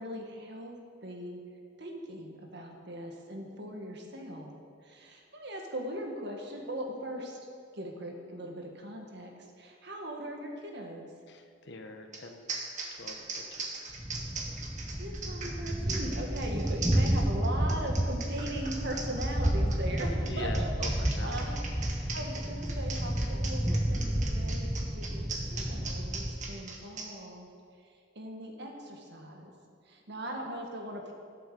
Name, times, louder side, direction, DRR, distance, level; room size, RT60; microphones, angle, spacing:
voice 1, 0.0-1.4 1.8-4.5 4.8-7.4 7.7-11.1 14.9-20.5 20.8-21.5 21.9-24.7 24.9-27.5 27.8-29.5 29.9-31.1, equal, 65° right, 2 dB, 1.8 m, -40 dB
voice 2, 11.3-12.6 12.9-13.7 20.3-21.3 21.9-22.1, left 2 dB, 65° left, 5 dB, 1.1 m, -44 dB
sound 1, 12.1-12.2 12.5-27.1, right 4 dB, 40° right, 1.6 m, -39 dB
Thunder, 14.0-26.6, right 1 dB, 10° right, 0.5 m, -31 dB
12.5 x 7.9 x 6.8 m, 2.3 s
head